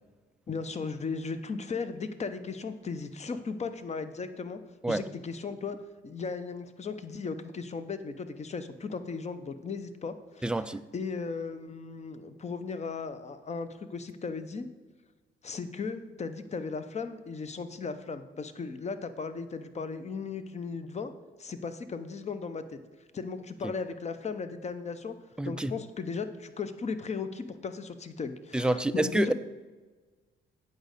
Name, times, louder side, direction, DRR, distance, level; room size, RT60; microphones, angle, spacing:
voice 1, 0.5-4.6 4.9-5.8 6.0-10.5 10.9-14.7 15.4-21.1 21.4-22.8 23.1-25.1 25.5-29.3, left 5 dB, 35° left, 10 dB, 0.8 m, -36 dB
voice 2, 10.4-10.8 25.4-25.7 28.5-29.3, right 1 dB, 5° right, 12 dB, 0.3 m, -27 dB
8.6 x 5.2 x 6.6 m, 1.3 s
cardioid pair, 90°, 20 cm